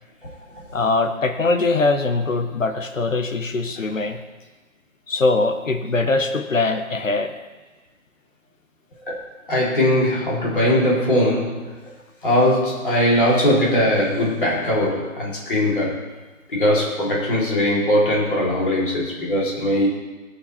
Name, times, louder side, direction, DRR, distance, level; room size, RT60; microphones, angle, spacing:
voice 1, 0.7-4.2 5.1-7.3, left 3 dB, 65° left, 7 dB, 1.0 m, -22 dB
voice 2, 9.5-11.8 12.2-16.0 16.5-19.9, left 1 dB, 35° left, -5 dB, 3.0 m, -20 dB
16.5 x 5.6 x 4.3 m, 1.2 s
figure-of-eight pair, 175°, 42 cm